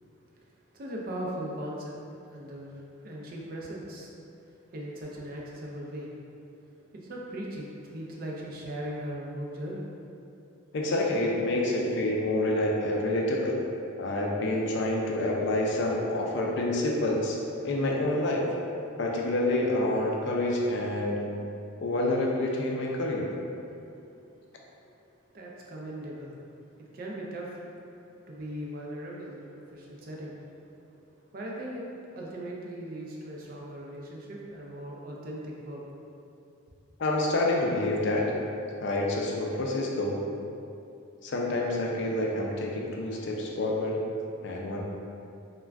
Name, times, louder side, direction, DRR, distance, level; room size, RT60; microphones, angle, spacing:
voice 1, 0.7-1.9 2.3-4.1 4.7-6.1 6.9-9.8 23.8-24.4 25.3-26.4 26.8-27.6 28.3-30.4 31.3-35.8, right 1 dB, 45° right, -3 dB, 0.4 m, -39 dB
voice 2, 10.7-13.6 14.0-17.4 17.6-18.5 19.0-21.2 21.8-23.3 37.0-38.3 38.8-40.2 41.2-44.0 44.4-44.8, left 1 dB, 55° left, -2 dB, 0.4 m, -27 dB
2.4 x 2.2 x 3.3 m, 2.6 s
head